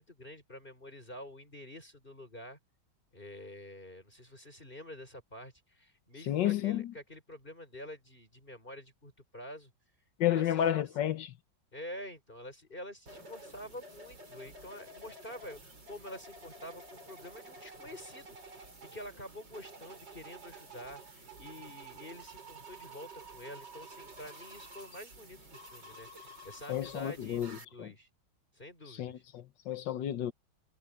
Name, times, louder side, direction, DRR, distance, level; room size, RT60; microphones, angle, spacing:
voice 1, 0.0-2.6 3.1-9.7 10.3-10.9 11.7-18.4 18.9-28.1 28.5-29.2, left 1 dB, 25° left, 5.5 m, -48 dB
voice 2, 6.3-6.9 10.2-11.3 26.7-27.9 29.0-30.3, left 11 dB, 65° left, 1.4 m, -31 dB
sound 1, 13.1-27.7, right 2 dB, 60° right, 6.6 m, -51 dB
omnidirectional pair, 2.2 m